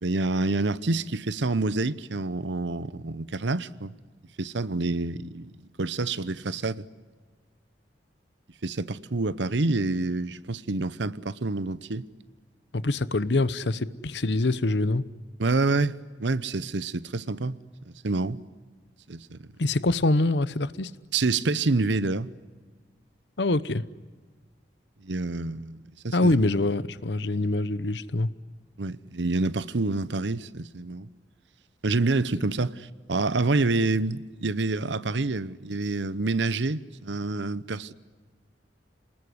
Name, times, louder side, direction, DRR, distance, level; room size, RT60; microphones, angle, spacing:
voice 1, 0.0-3.9 4.4-5.5 5.8-6.9 8.6-12.1 15.4-17.6 18.0-18.4 19.1-19.4 21.1-22.3 25.0-25.8 26.0-26.4 28.8-31.1 31.8-37.9, right 3 dB, 70° right, 0.9 m, -27 dB
voice 2, 12.7-15.0 19.6-20.9 23.4-23.8 26.1-28.3, left 2 dB, 65° left, 0.9 m, -24 dB
28.0 x 20.0 x 9.6 m
head